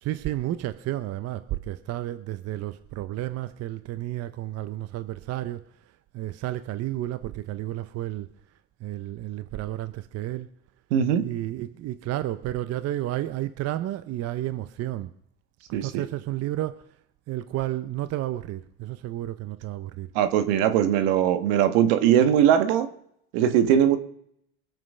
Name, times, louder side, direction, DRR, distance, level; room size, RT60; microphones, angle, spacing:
voice 1, 0.0-8.3 8.8-10.5 11.2-15.1 15.7-16.9 17.3-20.1, right 14 dB, 45° right, 0.7 m, -32 dB
voice 2, 10.9-11.3 15.7-16.0 20.1-22.9 23.3-24.0, right 9 dB, 75° right, 1.6 m, -20 dB
22.5 x 7.7 x 5.5 m
supercardioid pair, 115°, 35 cm